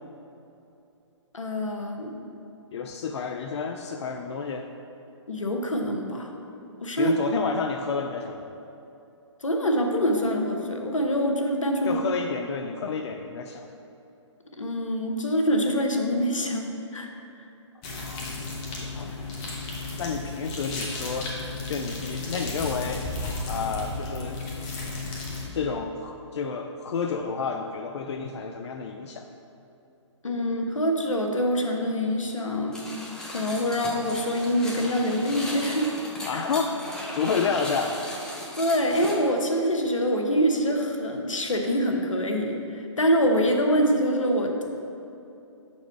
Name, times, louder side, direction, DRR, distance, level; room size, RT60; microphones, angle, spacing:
voice 1, 1.3-2.2 5.3-6.3 6.8-7.1 9.4-12.0 14.6-17.1 18.8-18.9 30.2-33.0 33.3-35.9 36.3-36.4 38.5-44.6, equal, 90° left, 3 dB, 0.9 m, -25 dB
voice 2, 2.7-4.7 7.0-8.4 11.9-13.7 17.9-18.4 18.9-19.3 20.0-23.0 23.5-24.4 25.5-29.3 36.2-36.7 37.1-38.0, left 5 dB, 60° left, 4 dB, 0.4 m, -30 dB
sound 1, 17.8-25.5, left 3 dB, 25° left, 1.2 m, -34 dB
sound 2, 32.7-39.1, left 1 dB, 5° left, 0.7 m, -37 dB
6.8 x 4.2 x 4.5 m, 2.8 s
figure-of-eight pair, 135°, 16 cm